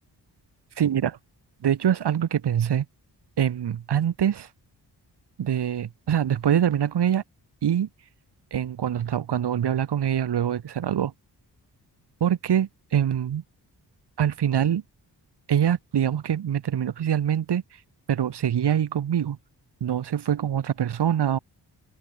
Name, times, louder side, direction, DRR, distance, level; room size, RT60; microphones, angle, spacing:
voice 1, 0.8-1.2 1.6-2.9 3.4-4.5 5.4-7.2 7.6-7.9 8.5-11.1 12.2-13.4 14.2-14.8 15.5-17.6 18.1-19.4 19.8-21.4, right 9 dB, 75° right, 2.4 m, -24 dB
open air
wide cardioid pair, 125°, 41 cm